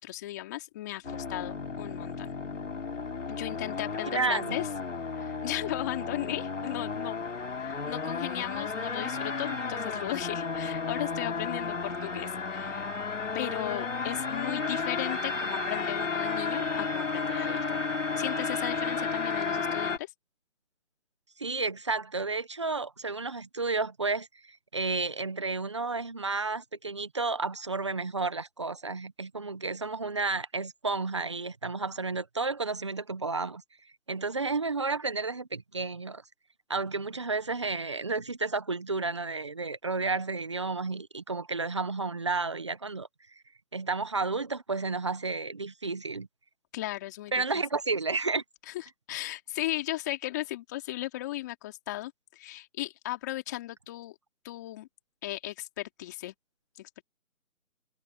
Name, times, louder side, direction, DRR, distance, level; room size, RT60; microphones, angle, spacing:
voice 1, 0.0-2.3 3.3-4.7 5.1-7.3 7.6-12.9 13.3-17.8 18.2-20.1 46.7-47.4 48.7-54.1 54.4-54.9 55.2-56.3 56.8-57.0, left 16 dB, 15° left, 3.2 m, -36 dB
sound 1, 1.0-20.0, left 4 dB, 60° left, 3.4 m, -33 dB
voice 2, 4.1-4.6 21.4-33.6 34.1-36.2 36.7-43.1 43.7-46.3 47.3-48.4, right 3 dB, 20° right, 1.2 m, -31 dB
figure-of-eight pair, 170°, 42 cm